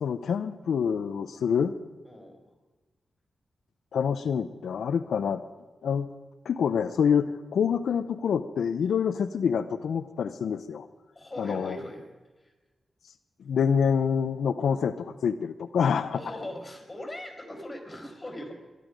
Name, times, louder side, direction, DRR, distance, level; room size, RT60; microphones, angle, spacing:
voice 1, 0.0-1.7 3.9-5.4 5.8-6.1 6.4-10.9 11.4-11.8 13.4-16.2, left 7 dB, 90° left, 10 dB, 0.5 m, -26 dB
voice 2, 2.0-2.4 11.1-12.0 12.4-12.5 16.1-18.5, left 1 dB, 20° left, 2 dB, 4.2 m, -40 dB
22.0 x 11.0 x 5.1 m, 1.3 s
cardioid pair, 90°, 0 cm